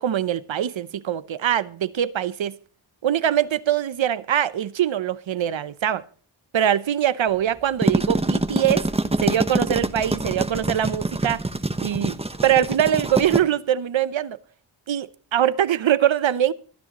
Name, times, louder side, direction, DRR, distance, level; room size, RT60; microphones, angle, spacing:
voice 1, 0.0-2.6 3.0-6.0 6.5-8.9 9.2-11.4 11.8-14.4 14.9-16.5, right 10 dB, 65° right, 0.8 m, -23 dB
sound 1, 7.6-13.4, right 2 dB, 10° right, 1.0 m, -25 dB
23.5 x 9.9 x 2.9 m
cardioid pair, 65°, 48 cm